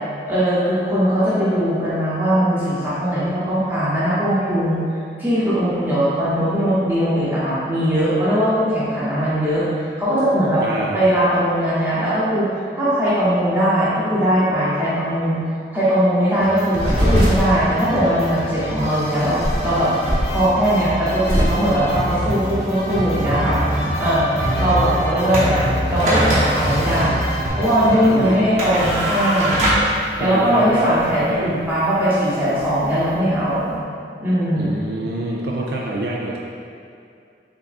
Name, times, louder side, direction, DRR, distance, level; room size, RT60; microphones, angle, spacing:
voice 1, 0.3-4.8 5.2-10.6 10.9-12.5 12.7-15.4 15.7-23.6 24.0-24.3 24.6-25.6 25.9-27.2 27.5-29.6 30.2-33.8 34.2-34.8, equal, 10° right, -11 dB, 0.9 m, -19 dB
voice 2, 10.6-11.1 27.9-28.4 30.2-31.6 34.6-36.4, right 2 dB, 65° right, -3 dB, 0.3 m, -26 dB
sound 1, 16.4-28.4, equal, 60° left, 0.6 m, -29 dB
sound 2, 16.8-27.5, equal, 80° right, 1.0 m, -24 dB
sound 3, 25.3-33.8, right 1 dB, 40° right, 0.8 m, -25 dB
3.5 x 3.5 x 2.4 m, 2.5 s
head